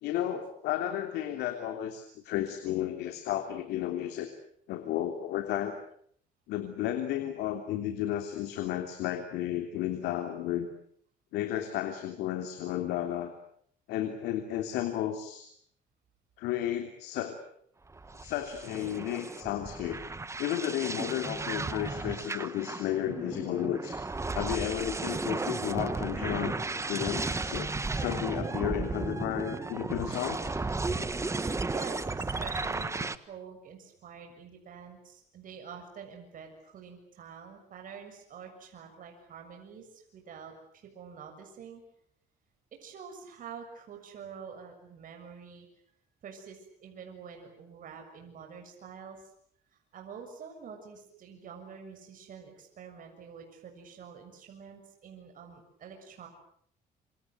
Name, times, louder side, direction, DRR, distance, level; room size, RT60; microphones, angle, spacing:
voice 1, 0.0-4.3 4.7-5.8 6.5-10.7 11.3-13.3 13.9-15.5 16.4-17.4 18.2-20.0 20.4-24.0 24.3-26.6 26.9-30.5, left 11 dB, 85° left, 6 dB, 3.2 m, -33 dB
sound 1, 17.9-33.2, right 3 dB, 15° right, 1.5 m, -34 dB
voice 2, 31.6-40.5 40.9-41.8 42.8-45.7 46.2-49.3 49.7-56.3, right 6 dB, 55° right, 4 dB, 6.9 m, -47 dB
27.5 x 26.5 x 8.0 m, 0.65 s
cardioid pair, 110°, 17 cm